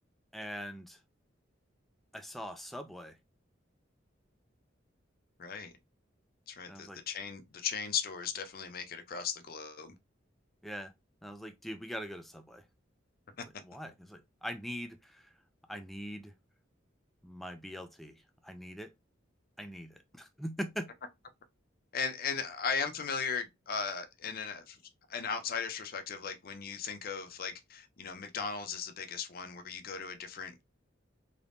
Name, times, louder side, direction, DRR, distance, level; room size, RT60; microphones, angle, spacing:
voice 1, 0.3-1.0 2.1-3.2 6.7-7.0 10.6-10.9 11.2-12.6 13.6-15.3 15.7-16.3 17.2-18.9 19.6-20.9, equal, ahead, 0.4 m, -42 dB
voice 2, 5.4-5.7 6.5-9.9 13.4-13.5 21.9-24.8 25.1-30.6, left 6 dB, 50° left, 0.6 m, -37 dB
3.4 x 2.9 x 2.6 m
head